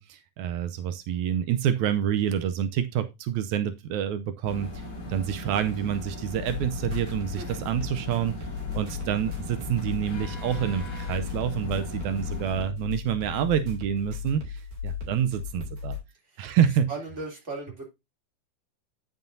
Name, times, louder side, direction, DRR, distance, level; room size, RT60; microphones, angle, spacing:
voice 1, 0.0-8.3 8.7-16.0 16.4-16.9, right 9 dB, 90° right, 1.6 m, -27 dB
sound 1, 4.4-12.6, left 1 dB, 40° left, 3.1 m, -38 dB
sound 2, 6.3-16.0, left 7 dB, 55° right, 3.9 m, -36 dB
voice 2, 16.9-17.9, right 3 dB, 20° right, 3.1 m, -36 dB
9.2 x 7.3 x 2.7 m
omnidirectional pair, 4.2 m